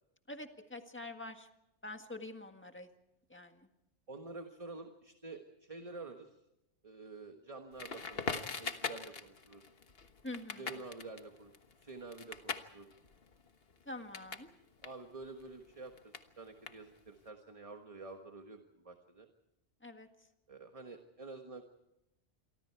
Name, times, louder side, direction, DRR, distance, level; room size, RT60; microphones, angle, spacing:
voice 1, 0.3-1.5 1.8-2.9 3.3-3.7 10.2-10.7 13.9-14.5 19.8-20.1, left 2 dB, 10° left, 6 dB, 1.7 m, -46 dB
voice 2, 4.1-6.4 6.8-9.6 10.6-11.5 11.8-12.9 14.8-19.3 20.5-21.6, right 3 dB, 30° right, 5 dB, 1.5 m, -49 dB
Crackle, 7.8-14.5 14.8-17.2, left 5 dB, 55° left, 1.5 m, -43 dB
28.0 x 24.0 x 4.7 m, 0.85 s
omnidirectional pair, 1.2 m